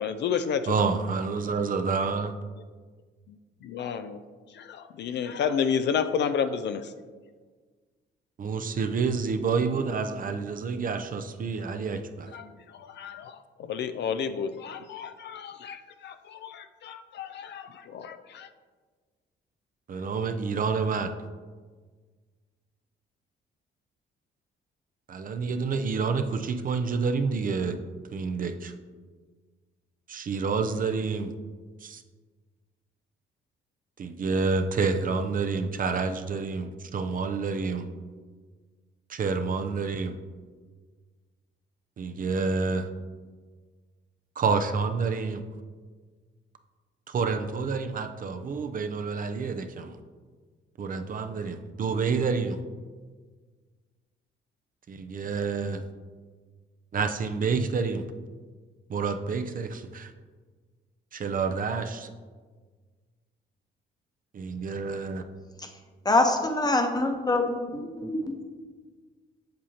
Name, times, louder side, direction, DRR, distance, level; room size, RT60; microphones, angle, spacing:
voice 1, 0.0-0.8 2.6-2.7 3.3-4.2 4.5-6.9 12.3-18.5, left 7 dB, 60° left, 0.4 m, -31 dB
voice 2, 0.7-2.3 8.4-12.3 19.9-21.1 25.1-27.8 28.1-28.7 30.1-31.3 31.8-32.0 34.0-37.9 39.1-40.1 42.0-42.9 44.4-45.4 47.1-50.0 50.8-52.6 54.9-55.8 56.9-58.0 58.9-60.1 61.1-62.1 64.3-65.2, right 4 dB, 45° right, 0.5 m, -28 dB
voice 3, 66.0-68.4, left 2 dB, 20° left, 1.0 m, -25 dB
7.6 x 6.9 x 2.8 m
cardioid pair, 90°, 20 cm